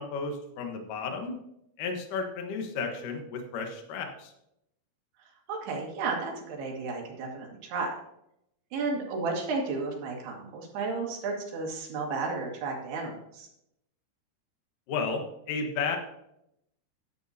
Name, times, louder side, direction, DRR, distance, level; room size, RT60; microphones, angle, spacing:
voice 1, 0.0-1.4 1.8-4.3 14.9-16.0, left 4 dB, 70° left, 4 dB, 2.0 m, -33 dB
voice 2, 5.5-7.9 8.7-13.5, right 4 dB, 60° right, 0 dB, 3.8 m, -33 dB
13.5 x 10.0 x 2.8 m, 0.79 s
omnidirectional pair, 5.7 m